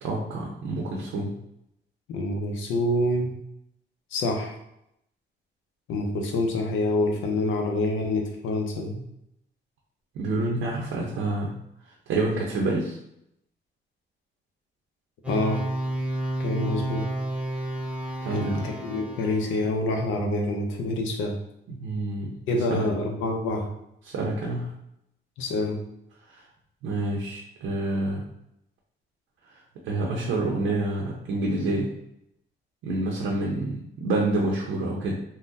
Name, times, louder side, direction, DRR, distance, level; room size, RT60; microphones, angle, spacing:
voice 1, 0.0-1.4 10.1-11.6 12.1-13.0 18.2-18.7 21.7-22.9 24.1-24.7 26.3-26.4 26.8-28.2 29.8-31.9 32.8-35.1, right 2 dB, 85° right, -2 dB, 0.6 m, -28 dB
voice 2, 2.1-3.3 4.1-4.6 5.9-9.1 15.3-15.6 16.4-17.1 18.3-21.4 22.5-23.7 25.4-25.8, left 2 dB, 80° left, 2 dB, 0.6 m, -26 dB
sound 1, 15.2-19.7, right 1 dB, 5° right, 0.8 m, -31 dB
3.6 x 2.2 x 2.6 m, 0.79 s
cardioid pair, 90°, 20 cm